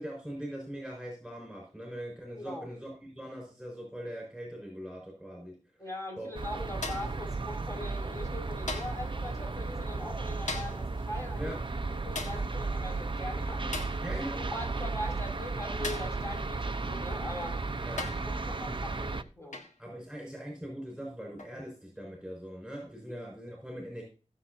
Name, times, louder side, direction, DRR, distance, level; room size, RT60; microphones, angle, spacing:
voice 1, 0.0-5.6 6.2-6.3 11.3-11.6 14.0-14.4 17.8-18.1 19.8-24.0, equal, ahead, 6.2 m, -41 dB
voice 2, 2.4-2.7 5.8-11.6 11.9-17.6 18.2-19.6, left 1 dB, 25° left, 5.8 m, -41 dB
sound 1, 6.3-19.2, right 3 dB, 40° right, 0.8 m, -34 dB
sound 2, 6.8-7.2 8.7-9.1 10.5-10.9 12.2-12.5 13.7-14.0 15.8-16.2 17.3-17.4 18.0-18.3 19.5-19.8 21.4-21.6, left 3 dB, 85° left, 1.7 m, -38 dB
19.5 x 7.4 x 2.8 m
wide cardioid pair, 50°, 12 cm